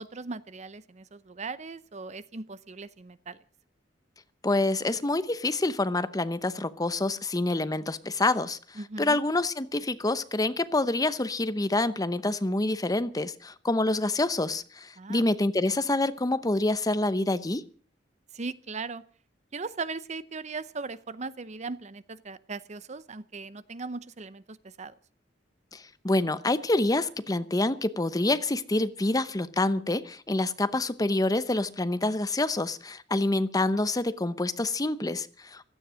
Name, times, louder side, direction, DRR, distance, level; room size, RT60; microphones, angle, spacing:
voice 1, 0.0-3.4 8.8-9.2 15.0-15.2 18.3-19.0 19.5-24.9, right 4 dB, 40° right, 0.7 m, -38 dB
voice 2, 4.4-17.6 25.7-35.6, left 2 dB, 20° left, 0.8 m, -27 dB
16.5 x 13.0 x 6.3 m
head